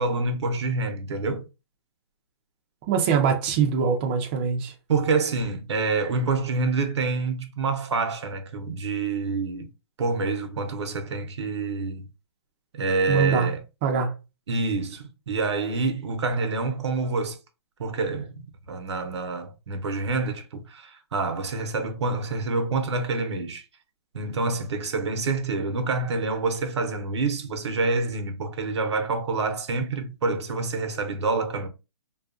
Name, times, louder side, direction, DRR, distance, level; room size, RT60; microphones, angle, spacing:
voice 1, 0.0-1.5 4.9-9.7 10.0-12.1 12.7-13.6 14.5-17.4 17.8-18.4 18.7-23.6 24.1-31.7, right 3 dB, 85° right, 0.7 m, -27 dB
voice 2, 2.9-4.7 13.1-13.5 13.8-14.2, right 6 dB, 25° right, 0.4 m, -23 dB
2.6 x 2.3 x 2.4 m
hypercardioid pair, 160°, 14 cm